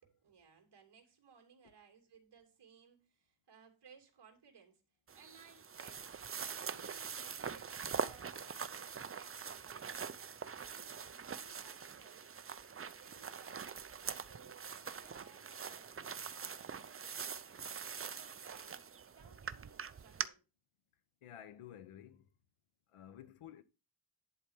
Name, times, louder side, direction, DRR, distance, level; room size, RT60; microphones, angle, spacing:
voice 1, 0.0-6.2 6.7-10.2 10.6-12.3 12.8-17.5 18.0-20.4, right 6 dB, 55° right, 2.8 m, -63 dB
sound 1, 5.1-20.3, right 6 dB, 30° right, 0.5 m, -44 dB
voice 2, 21.2-22.3 22.9-23.6, left 10 dB, 85° left, 1.0 m, -53 dB
11.0 x 4.5 x 5.5 m
wide cardioid pair, 130°, 50 cm